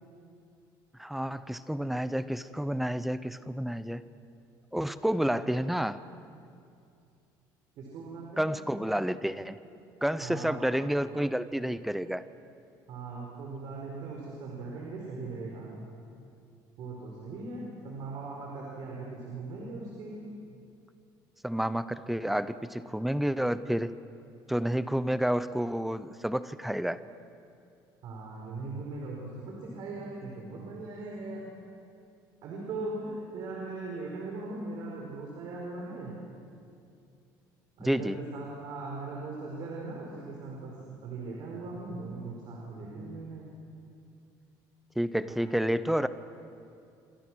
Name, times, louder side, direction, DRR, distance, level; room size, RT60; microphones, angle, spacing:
voice 1, 1.0-4.0 4.7-6.0 8.4-9.6 10.0-12.2 21.4-23.9 24.5-27.0 37.8-38.2 45.0-46.1, equal, ahead, 13 dB, 0.6 m, -30 dB
voice 2, 7.8-8.5 10.2-11.0 12.9-15.7 16.8-20.2 28.0-31.5 32.4-36.2 37.8-40.8 41.0-43.5 45.2-45.5, right 3 dB, 60° right, -2 dB, 4.7 m, -39 dB
28.0 x 25.0 x 6.3 m, 2.5 s
cardioid pair, 160°, 8 cm